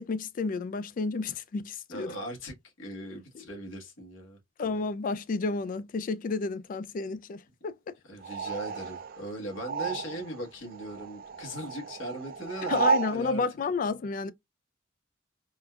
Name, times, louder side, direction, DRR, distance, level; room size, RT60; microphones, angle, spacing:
voice 1, 0.0-2.1 4.6-7.9 12.7-14.3, left 4 dB, 45° left, 0.3 m, -31 dB
voice 2, 1.9-4.4 8.1-13.4, right 1 dB, 75° left, 1.2 m, -39 dB
sound 1, 8.2-10.5 10.7-13.2, right 5 dB, 45° right, 0.4 m, -32 dB
3.7 x 2.2 x 2.3 m
head